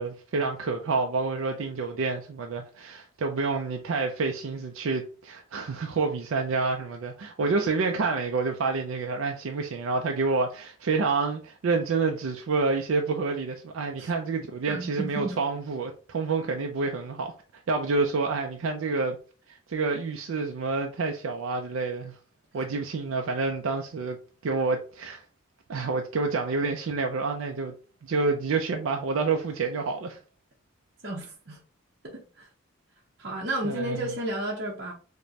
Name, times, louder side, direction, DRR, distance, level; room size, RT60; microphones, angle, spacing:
voice 1, 0.0-17.3 17.7-19.2 19.5-22.1 22.5-24.2 24.4-25.2 25.7-27.7 28.0-30.2 33.6-34.1, right 4 dB, 80° right, 0.4 m, -28 dB
voice 2, 14.7-15.3 31.0-31.6 32.0-32.5 33.2-34.9, right 1 dB, 55° right, 0.8 m, -32 dB
4.9 x 2.1 x 2.7 m
head